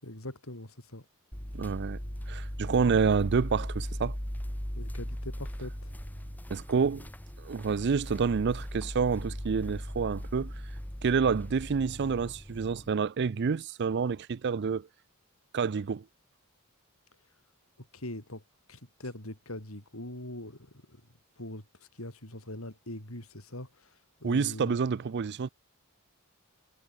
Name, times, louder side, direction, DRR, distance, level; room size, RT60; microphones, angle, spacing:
voice 1, 0.0-1.0 4.7-5.9 17.8-18.4 18.7-21.0 21.4-24.8, left 1 dB, 85° left, 6.8 m, -42 dB
sound 1, 1.3-12.9, equal, 10° left, 1.2 m, -38 dB
voice 2, 1.5-2.0 2.3-4.1 6.5-7.1 7.4-10.5 11.0-14.9 15.5-16.0 24.2-25.5, right 5 dB, 55° right, 0.4 m, -28 dB
head